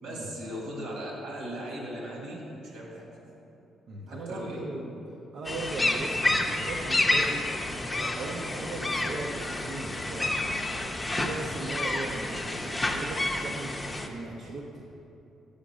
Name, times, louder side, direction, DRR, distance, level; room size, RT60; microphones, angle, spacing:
voice 1, 0.0-3.1 4.1-4.6, equal, 90° right, -3 dB, 1.7 m, -38 dB
voice 2, 3.9-5.0 5.3-7.5 7.9-10.7 11.1-14.8, right 2 dB, 65° right, -2 dB, 0.6 m, -38 dB
sound 1, 5.4-14.1, left 2 dB, 20° left, 0.6 m, -29 dB
5.8 x 5.1 x 6.0 m, 2.9 s
cardioid pair, 90°, 0 cm